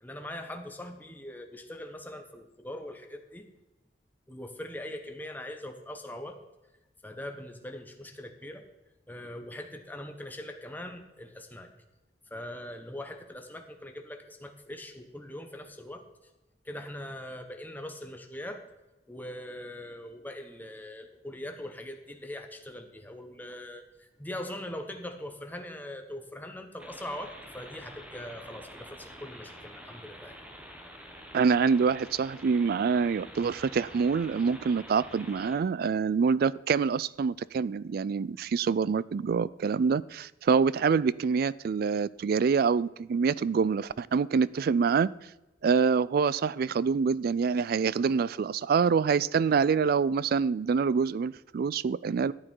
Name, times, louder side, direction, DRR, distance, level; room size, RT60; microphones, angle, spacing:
voice 1, 0.0-3.4 4.3-6.4 7.0-8.6 9.1-11.7 12.3-16.3 16.6-18.7 19.1-30.4, left 1 dB, 10° left, 1.1 m, -41 dB
sound 1, 26.8-35.6, equal, 5° right, 1.4 m, -47 dB
voice 2, 31.3-45.1 45.6-52.3, right 5 dB, 55° right, 0.3 m, -26 dB
13.5 x 8.9 x 4.6 m
head